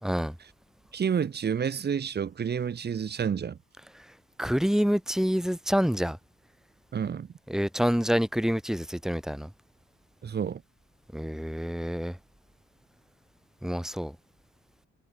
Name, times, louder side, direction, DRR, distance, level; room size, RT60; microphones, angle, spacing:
voice 1, 0.0-0.3 4.4-6.2 7.5-9.5 11.1-12.2 13.6-14.2, equal, ahead, 0.5 m, -27 dB
voice 2, 0.9-3.6 6.9-7.3 10.2-10.6, right 7 dB, 35° right, 0.7 m, -29 dB
cardioid pair, 90°, 30 cm